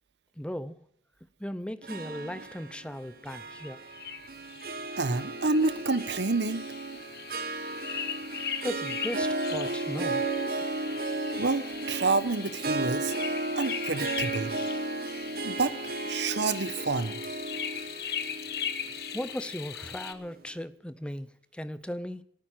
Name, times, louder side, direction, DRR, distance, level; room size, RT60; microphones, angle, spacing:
voice 1, 0.4-0.8 1.4-3.8 8.6-10.2 19.1-22.2, equal, 5° left, 0.6 m, -37 dB
Harp, 1.8-20.3, right 2 dB, 55° right, 1.4 m, -35 dB
sound 1, 3.5-20.1, left 8 dB, 60° left, 1.2 m, -39 dB
voice 2, 5.0-6.6 11.4-13.1 13.6-14.5 15.4-15.7 16.1-17.2, right 3 dB, 75° right, 1.0 m, -28 dB
14.5 x 9.1 x 9.0 m
head